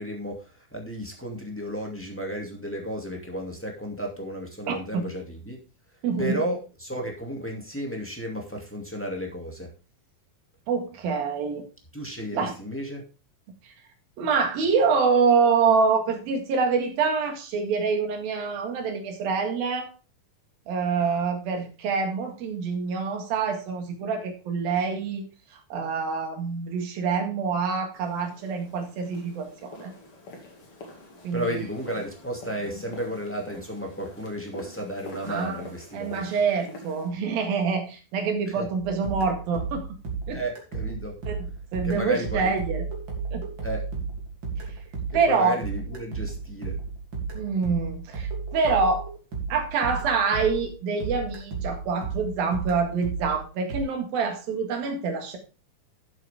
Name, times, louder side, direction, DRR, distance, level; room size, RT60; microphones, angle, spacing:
voice 1, 0.0-5.6 6.2-9.7 11.9-13.0 31.3-36.3 38.5-38.7 40.3-41.1 41.8-42.5 43.6-43.8 45.1-46.8, equal, 5° left, 0 dB, 1.4 m, -33 dB
voice 2, 4.7-5.0 6.0-6.4 10.7-11.7 12.3-12.5 13.6-13.7 14.2-19.9 20.7-25.3 25.7-29.9 31.2-31.6 35.3-35.6 35.9-39.9 40.3-40.4 41.3-42.8 43.3-43.4 45.1-45.6 47.3-49.1 49.5-55.4, right 5 dB, 80° right, 4 dB, 3.7 m, -26 dB
sound 1, 27.9-37.1, left 2 dB, 45° left, 2.9 m, -46 dB
sound 2, 38.8-50.8 51.0-53.8, right 5 dB, 35° right, 3.3 m, -33 dB
11.5 x 8.0 x 3.5 m, 0.31 s
omnidirectional pair, 4.1 m